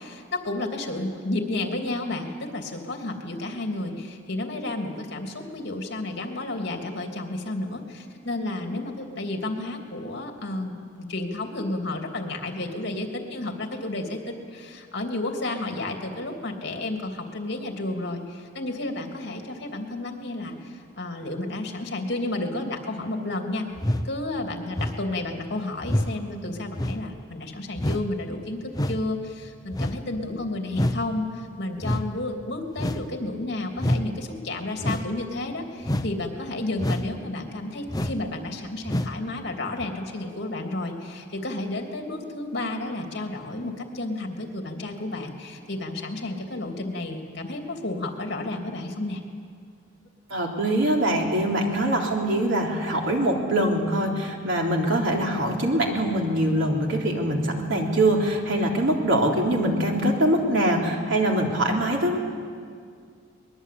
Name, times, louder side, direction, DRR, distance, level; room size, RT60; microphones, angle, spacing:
voice 1, 0.0-23.7 24.0-49.2, left 2 dB, 60° left, 3 dB, 3.1 m, -31 dB
sound 1, 23.8-24.1 24.7-25.1 25.8-26.1 26.7-27.0 27.8-28.1 28.7-29.1 29.7-30.0 30.7-31.0 31.8-32.1 32.8-33.1 33.8-34.1 34.8-35.1 35.8-36.1 36.8-37.1 37.9-38.2 38.9-39.2 39.8-39.9, left 1 dB, 20° left, 0.8 m, -26 dB
voice 2, 50.3-62.2, right 1 dB, 75° right, 0 dB, 3.6 m, -23 dB
23.0 x 21.0 x 8.6 m, 2.2 s
head